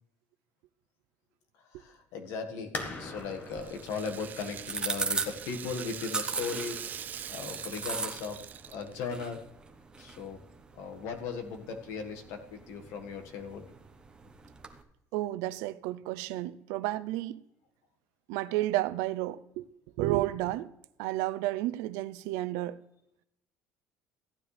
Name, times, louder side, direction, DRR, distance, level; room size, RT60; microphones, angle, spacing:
voice 1, 1.5-6.8 7.3-8.4 8.7-9.4 10.0-10.4 10.7-13.6, left 5 dB, 70° left, 1.6 m, -38 dB
sound 1, 2.7-8.2, left 3 dB, 35° left, 1.5 m, -44 dB
Rattle (instrument), 2.9-9.1, right 9 dB, 35° right, 0.4 m, -43 dB
sound 2, 3.2-14.8, right 4 dB, 15° right, 1.1 m, -40 dB
voice 2, 15.1-17.4 18.3-19.7 20.0-20.7 21.0-22.8, right 16 dB, 85° right, 0.5 m, -31 dB
14.5 x 9.7 x 3.3 m
cardioid pair, 130°, 5 cm